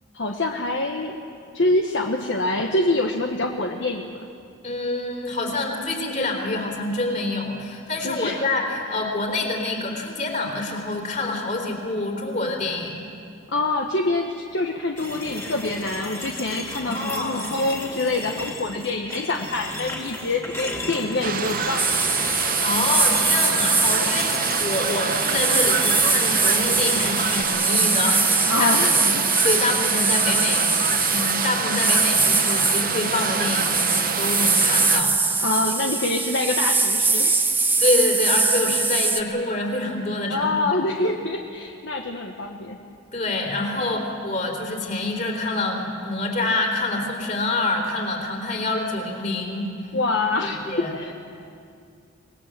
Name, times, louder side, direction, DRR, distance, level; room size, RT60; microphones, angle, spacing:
voice 1, 0.1-1.2 1.5-4.2 8.0-8.5 13.5-21.8 28.5-29.2 35.4-37.4 40.3-42.8 49.9-51.1, left 2 dB, 60° left, 2 dB, 1.2 m, -25 dB
voice 2, 4.6-13.1 16.7-17.5 22.3-30.7 31.1-35.7 37.8-40.8 43.1-49.7 50.4-50.9, left 2 dB, 35° left, 2 dB, 3.7 m, -27 dB
sound 1, 15.0-27.4, left 2 dB, 15° left, 2.7 m, -35 dB
sound 2, 21.2-35.0, right 6 dB, 45° right, 0.9 m, -27 dB
sound 3, 21.8-39.2, right 3 dB, 10° right, 0.8 m, -22 dB
25.5 x 20.0 x 7.5 m, 2.4 s
head